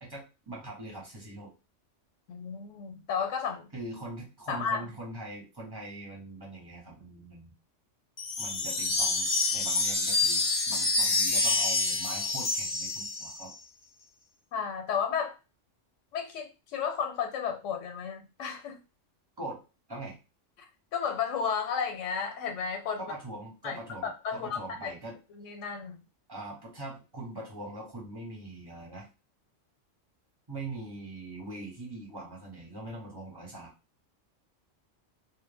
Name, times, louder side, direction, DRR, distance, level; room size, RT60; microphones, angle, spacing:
voice 1, 0.0-1.5 3.7-7.5 8.4-13.5 19.4-19.6 19.9-20.2 23.0-25.2 26.3-29.1 30.5-33.7, right 2 dB, 20° right, -2 dB, 0.8 m, -42 dB
voice 2, 2.3-3.7 4.5-4.9 14.5-15.4 16.1-18.8 20.9-23.1 23.6-24.9 25.3-26.0, left 6 dB, 80° left, 5 dB, 1.0 m, -33 dB
sound 1, 8.2-13.5, left 3 dB, 50° left, 0.6 m, -27 dB
2.2 x 2.1 x 3.3 m, 0.29 s
omnidirectional pair, 1.3 m